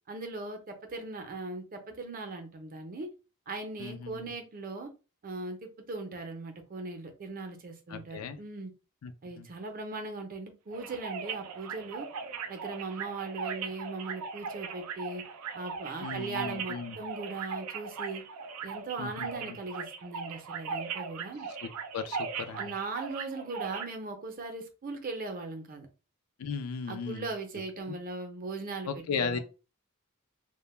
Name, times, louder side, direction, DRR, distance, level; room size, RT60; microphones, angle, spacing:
voice 1, 0.1-3.1 3.5-4.9 5.2-8.7 9.2-12.1 12.5-15.2 15.5-18.2 18.6-21.5 22.6-25.9 26.9-29.4, right 3 dB, 40° right, 0.5 m, -39 dB
voice 2, 3.8-4.3 7.9-8.4 9.0-9.5 16.0-17.0 19.0-19.6 21.6-22.7 26.4-27.3 27.8-28.0 28.9-29.4, left 5 dB, 75° left, 0.4 m, -36 dB
sound 1, 10.7-23.9, right 6 dB, 90° right, 0.4 m, -39 dB
2.1 x 2.0 x 3.1 m
head